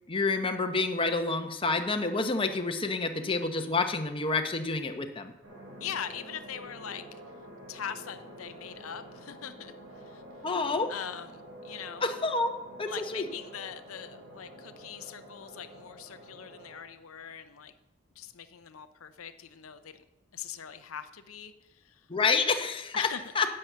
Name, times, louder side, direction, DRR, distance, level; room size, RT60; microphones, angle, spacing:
voice 1, 0.1-5.3 10.4-10.9 12.0-12.5 12.8-13.3 22.1-23.1 23.3-23.5, left 3 dB, 25° left, 6 dB, 0.9 m, -28 dB
sound 1, 5.4-16.8, right 1 dB, 65° right, 3.7 m, -48 dB
voice 2, 5.8-7.0 7.7-9.7 10.1-10.2 10.9-12.1 12.8-17.7 18.2-20.0 20.3-22.1 22.9-23.2, left 8 dB, 85° left, 10 dB, 0.7 m, -41 dB
10.5 x 7.7 x 6.7 m, 0.98 s
head